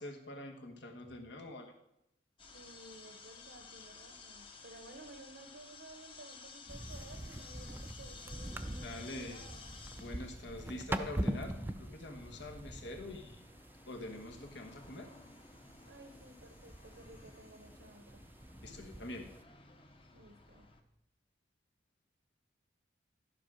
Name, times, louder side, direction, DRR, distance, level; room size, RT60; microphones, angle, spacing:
voice 1, 0.0-1.7 8.8-9.4 10.0-13.5 13.9-15.1 18.6-19.4, left 2 dB, 70° left, 3 dB, 1.3 m, -45 dB
sound 1, 2.4-20.8, left 4 dB, 30° left, 0.8 m, -55 dB
voice 2, 2.5-9.7 15.9-18.2 20.1-20.7, right 1 dB, 80° right, 5 dB, 1.0 m, -55 dB
sound 2, 6.7-19.4, right 1 dB, 10° right, 0.4 m, -44 dB
12.0 x 5.0 x 6.2 m, 0.83 s
head